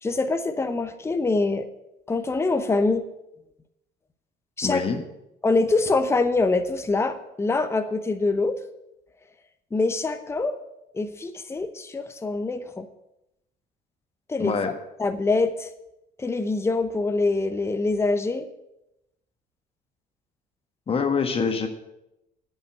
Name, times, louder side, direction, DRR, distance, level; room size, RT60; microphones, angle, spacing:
voice 1, 0.0-1.7 2.1-3.0 4.6-4.8 5.4-8.6 9.7-10.6 10.9-12.9 14.3-14.7 15.0-15.7 16.2-18.5, left 3 dB, 15° left, 9 dB, 0.8 m, -24 dB
voice 2, 4.6-5.0 14.4-14.7 20.9-21.7, left 5 dB, 35° left, 6 dB, 1.6 m, -25 dB
10.5 x 5.6 x 8.5 m, 0.89 s
cardioid pair, 110°, 17 cm